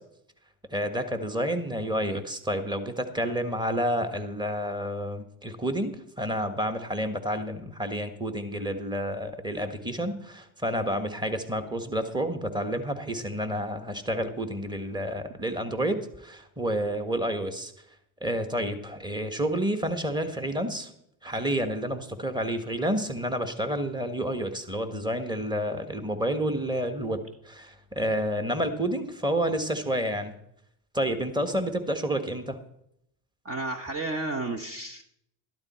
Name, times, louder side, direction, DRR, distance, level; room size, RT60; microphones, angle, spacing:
voice 1, 0.7-17.7 18.2-20.9 21.2-27.2 27.4-30.3 30.9-32.6, equal, 10° right, 7 dB, 1.5 m, -29 dB
voice 2, 33.4-35.0, right 2 dB, 30° right, 3 dB, 1.1 m, -32 dB
12.5 x 12.0 x 4.4 m, 0.75 s
supercardioid pair, 95°, 46 cm